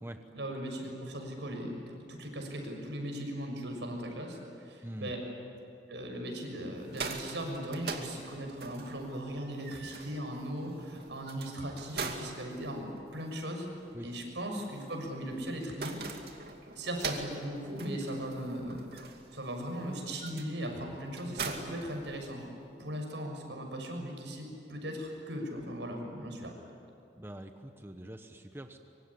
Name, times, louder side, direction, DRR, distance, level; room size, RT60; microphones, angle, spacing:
voice 1, 0.3-5.2 5.9-13.7 14.0-16.0 16.7-18.9 19.3-22.5 22.8-26.5, equal, 85° right, 2 dB, 6.4 m, -38 dB
voice 2, 4.8-5.1 13.9-14.2 27.2-28.8, right 1 dB, 15° right, 6 dB, 1.1 m, -44 dB
sound 1, 6.7-22.6, right 4 dB, 60° right, 2.5 m, -43 dB
24.5 x 24.5 x 10.0 m, 2.5 s
head